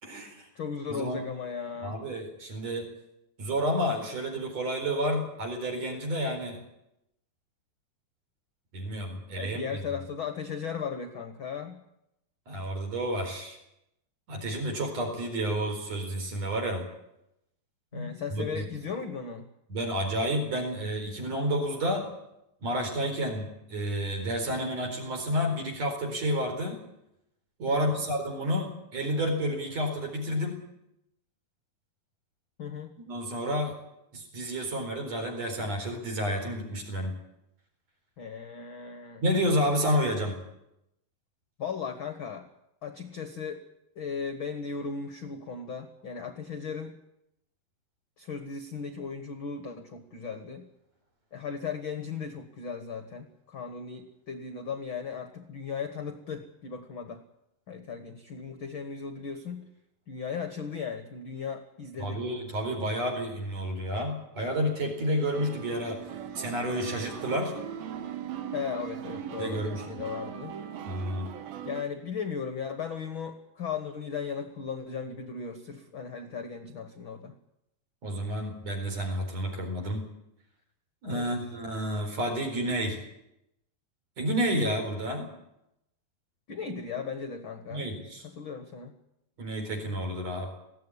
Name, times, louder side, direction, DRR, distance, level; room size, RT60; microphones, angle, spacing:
voice 1, 0.0-0.5 0.9-1.2 1.8-2.9 3.4-6.6 8.7-9.8 12.5-13.6 14.3-16.9 17.9-18.7 19.7-22.1 22.6-26.8 27.6-30.6 33.1-33.7 34.1-37.2 39.2-40.4 62.0-66.0 66.4-67.6 69.4-69.8 70.9-71.3 78.0-80.1 81.0-83.0 84.2-85.3 87.7-88.2 89.4-90.5, equal, 45° right, 3 dB, 5.5 m, -30 dB
voice 2, 0.5-2.0 9.3-11.8 17.9-19.5 27.7-28.0 32.6-32.9 38.2-39.2 41.6-42.5 42.8-43.6 43.9-47.0 48.2-50.7 51.3-57.2 57.7-59.7 60.1-62.2 68.5-70.6 71.6-77.3 81.1-81.3 86.5-87.9 88.2-88.9, left 6 dB, 55° left, 8 dB, 1.4 m, -37 dB
sound 1, 65.0-71.8, right 9 dB, 80° right, 3.0 m, -39 dB
20.5 x 16.0 x 10.0 m, 0.85 s
omnidirectional pair, 4.2 m